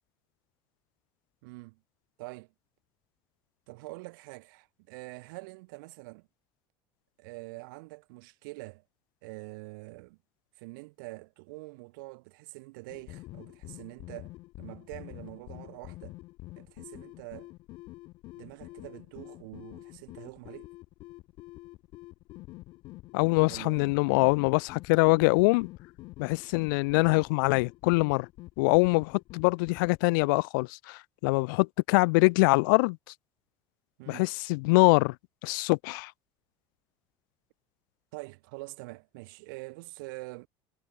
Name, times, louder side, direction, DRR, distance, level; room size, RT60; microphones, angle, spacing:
voice 1, 1.4-1.8 2.2-2.5 3.7-6.3 7.2-8.8 9.2-10.2 10.6-16.2 16.6-17.5 18.4-20.7 23.5-24.0 34.0-34.3 38.1-40.5, right 25 dB, 90° right, 2.7 m, -45 dB
sound 1, 12.9-30.2, left 19 dB, 45° left, 4.7 m, -47 dB
voice 2, 23.1-25.7 26.2-28.3 28.6-33.0 34.1-35.1 35.4-36.1, left 28 dB, 80° left, 1.1 m, -24 dB
cardioid pair, 175°, 11 cm